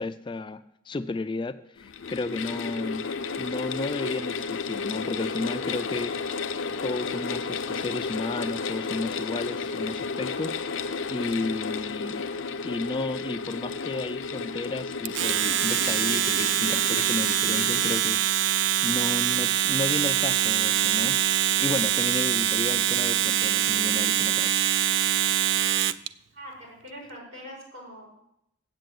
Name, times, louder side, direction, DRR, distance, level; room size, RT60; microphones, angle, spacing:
voice 1, 0.0-3.1 3.4-6.2 6.8-12.3 12.6-18.4 18.8-21.2 21.6-24.8, left 3 dB, 25° left, 11 dB, 0.3 m, -33 dB
sound 1, 1.8-18.0, left 5 dB, 70° left, 0.6 m, -33 dB
Domestic sounds home sounds, 15.0-26.1, right 11 dB, 60° right, 0.4 m, -24 dB
voice 2, 26.3-28.1, equal, 80° right, -3 dB, 5.4 m, -43 dB
8.1 x 7.8 x 7.7 m, 0.79 s
head